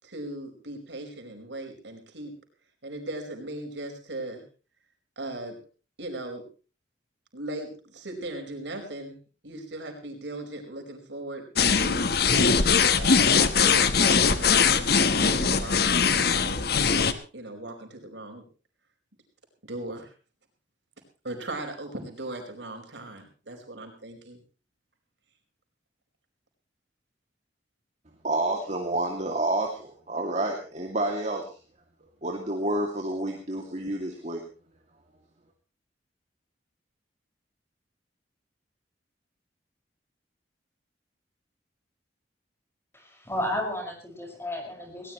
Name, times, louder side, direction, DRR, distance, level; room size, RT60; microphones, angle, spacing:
voice 1, 0.0-2.3 2.8-4.4 5.2-5.6 6.0-6.4 7.3-9.1 9.4-12.1 13.0-13.3 13.6-18.4 19.6-20.1 21.2-24.4, right 1 dB, 85° right, 3 dB, 5.0 m, -38 dB
sound 1, 11.6-17.1, left 6 dB, 60° left, 1.2 m, -21 dB
voice 2, 28.2-31.5 32.2-34.5, right 1 dB, 40° right, 1 dB, 2.4 m, -29 dB
voice 3, 42.9-45.1, left 1 dB, 15° left, 2 dB, 5.7 m, -33 dB
20.0 x 18.5 x 3.1 m, 0.36 s
head